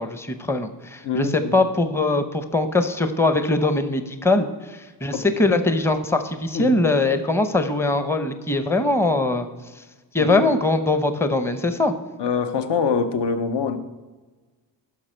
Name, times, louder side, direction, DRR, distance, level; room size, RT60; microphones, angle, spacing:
voice 1, 0.0-9.5 10.1-11.9, left 2 dB, 5° left, 9 dB, 0.6 m, -21 dB
voice 2, 1.0-1.6 5.1-5.2 6.5-6.8 10.2-10.4 12.2-13.8, left 5 dB, 70° left, 10 dB, 0.9 m, -24 dB
11.5 x 5.9 x 4.4 m, 1.3 s
cardioid pair, 90°, 43 cm